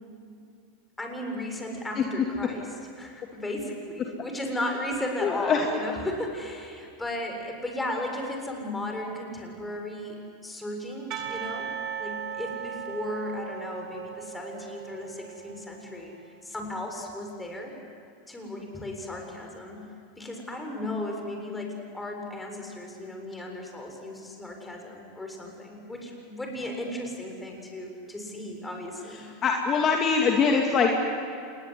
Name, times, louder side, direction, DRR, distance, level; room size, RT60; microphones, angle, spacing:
voice 1, 1.0-16.1 16.4-17.7 18.3-19.9 20.2-29.3, left 1 dB, 10° left, 2 dB, 7.1 m, -35 dB
voice 2, 5.2-5.6 29.4-30.9, left 5 dB, 35° left, 1 dB, 2.8 m, -22 dB
Percussion / Church bell, 11.1-16.2, right 8 dB, 45° right, 2.2 m, -38 dB
27.5 x 21.0 x 9.8 m, 2.5 s
hypercardioid pair, 95°, 0 cm